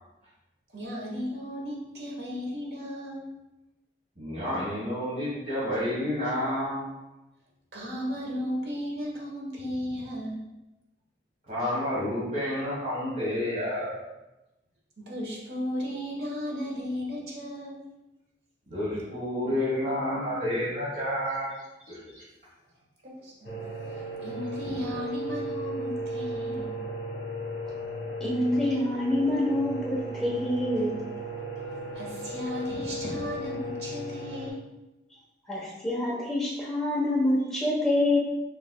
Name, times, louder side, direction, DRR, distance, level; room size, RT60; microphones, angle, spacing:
voice 1, 0.7-3.3 7.7-10.4 15.1-17.8 23.0-23.5 23.8-26.7 31.9-34.6, equal, 70° right, -3 dB, 1.2 m, -35 dB
voice 2, 4.2-6.8 11.5-14.0 18.7-21.5 21.9-22.2, left 1 dB, 45° right, -10 dB, 1.4 m, -30 dB
sound 1, 23.4-34.5, right 1 dB, 80° left, 1.1 m, -35 dB
voice 3, 28.2-30.9 35.5-38.2, left 1 dB, 5° left, -5 dB, 0.9 m, -26 dB
6.0 x 3.3 x 2.3 m, 0.99 s
head